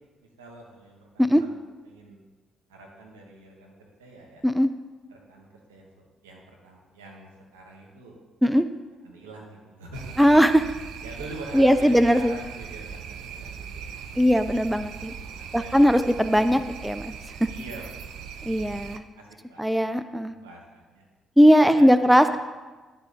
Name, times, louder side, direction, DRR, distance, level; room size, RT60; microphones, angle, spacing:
voice 1, 0.2-1.5 1.8-2.2 2.7-4.4 5.1-8.2 9.0-10.1 11.0-14.0 15.1-15.9 17.5-19.8 20.2-21.1 21.6-22.4, right 2 dB, 85° right, 0 dB, 1.1 m, -45 dB
sound 1, 9.9-19.0, right 7 dB, 65° right, 0.4 m, -39 dB
voice 2, 10.2-10.6 11.5-12.4 14.2-15.1 15.5-17.1 18.5-19.0 19.6-20.3 21.4-22.4, equal, 5° right, 11 dB, 0.4 m, -19 dB
11.5 x 4.0 x 3.9 m, 1.3 s
hypercardioid pair, 45°, 0 cm